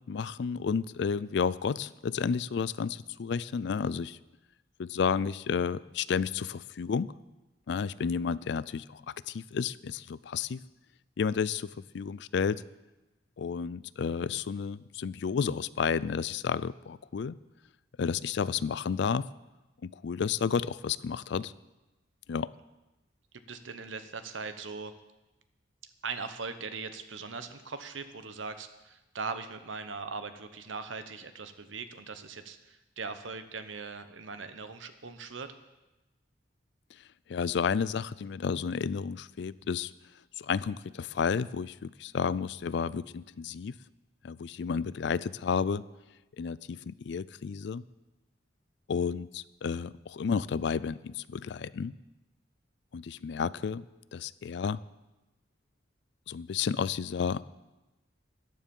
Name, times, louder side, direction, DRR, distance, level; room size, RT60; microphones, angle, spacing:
voice 1, 0.1-4.2 4.8-7.1 7.7-10.6 11.2-11.7 11.9-12.6 13.4-17.4 18.0-19.3 19.8-21.5 22.3-22.5 37.3-39.9 40.4-43.8 44.2-45.8 46.4-47.8 48.9-51.9 52.9-53.8 54.1-54.8 56.3-57.4, left 6 dB, 65° left, 19 dB, 0.4 m, -31 dB
voice 2, 23.5-24.9 26.0-35.5, right 4 dB, 85° right, 10 dB, 1.0 m, -40 dB
14.0 x 9.8 x 5.4 m, 1.1 s
head